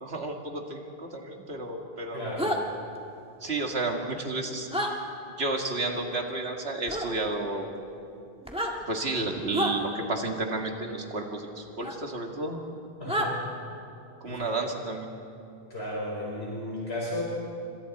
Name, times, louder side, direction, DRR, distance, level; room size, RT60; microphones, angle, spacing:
voice 1, 0.0-2.4 3.4-4.7 5.4-7.7 8.9-12.6 13.0-13.3 14.2-15.1, right 2 dB, 85° right, 2 dB, 2.2 m, -32 dB
voice 2, 2.1-2.5 13.0-13.5 14.2-14.5 15.7-17.2, left 1 dB, 80° left, -5 dB, 5.0 m, -34 dB
sound 1, 2.4-2.6 4.7-4.9 6.9-7.1 8.4-8.7 9.5-9.7 11.8-12.0 13.1-13.3, equal, 5° right, 1.7 m, -28 dB
26.5 x 25.0 x 4.2 m, 2.6 s
omnidirectional pair, 1.1 m